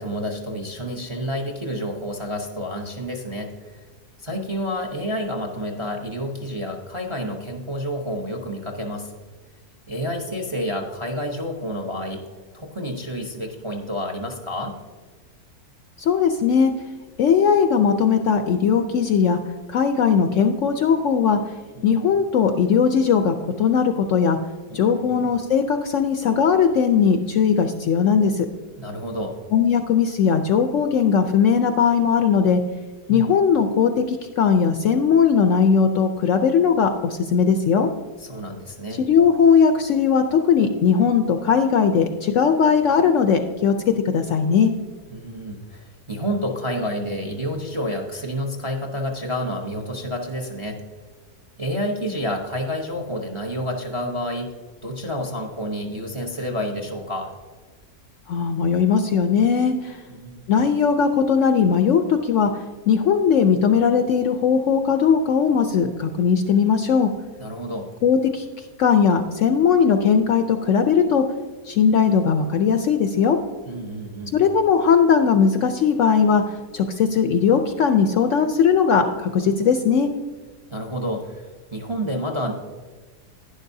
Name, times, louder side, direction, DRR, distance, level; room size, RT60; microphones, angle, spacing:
voice 1, 0.0-3.8 4.2-9.1 9.9-12.2 12.5-14.8 21.8-21.9 24.7-25.2 28.7-29.4 33.1-33.3 38.2-39.0 45.1-50.8 51.6-54.5 54.8-57.3 60.1-60.4 67.4-67.9 73.7-74.4 80.7-82.5, equal, 30° right, 2 dB, 0.6 m, -29 dB
voice 2, 16.0-16.7 17.2-19.4 19.7-21.4 21.8-24.4 24.7-28.5 29.5-32.6 33.1-37.9 39.0-43.7 44.1-44.7 58.3-60.0 60.5-62.5 62.9-67.1 68.0-68.4 68.8-71.2 71.6-73.4 74.3-80.1, left 6 dB, 65° left, 7 dB, 0.8 m, -19 dB
11.5 x 10.0 x 2.7 m, 1.4 s
omnidirectional pair, 1.7 m